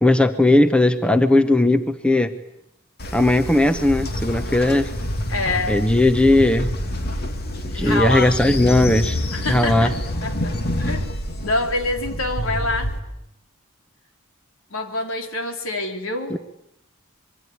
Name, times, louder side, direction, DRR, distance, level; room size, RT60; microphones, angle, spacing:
voice 1, 0.0-2.3 3.1-4.9 5.7-6.7 7.8-9.2 9.5-9.9 16.3-16.4, left 1 dB, 5° left, 9 dB, 1.0 m, -17 dB
Train, 3.0-13.0, left 1 dB, 50° left, 2.5 m, -27 dB
voice 2, 5.3-5.8 7.5-8.3 9.3-9.9 10.2-11.1 11.4-12.9 14.7-16.4, left 2 dB, 70° left, 4 dB, 3.6 m, -26 dB
25.5 x 23.5 x 9.7 m, 0.80 s
head